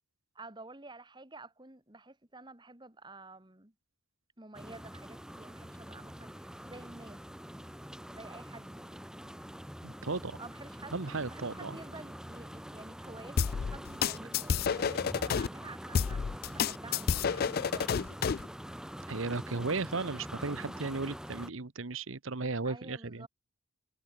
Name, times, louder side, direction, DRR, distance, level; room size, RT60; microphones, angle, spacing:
voice 1, 0.3-3.7 4.4-7.2 8.1-9.0 10.4-18.5 22.6-23.3, right 2 dB, 20° right, 2.1 m, -50 dB
sound 1, 4.5-21.5, equal, 5° right, 2.3 m, -45 dB
voice 2, 9.8-10.4 10.9-11.8 19.1-23.3, right 3 dB, 85° right, 1.2 m, -35 dB
sound 2, 13.4-15.5 15.9-18.5, left 6 dB, 50° left, 0.4 m, -29 dB
head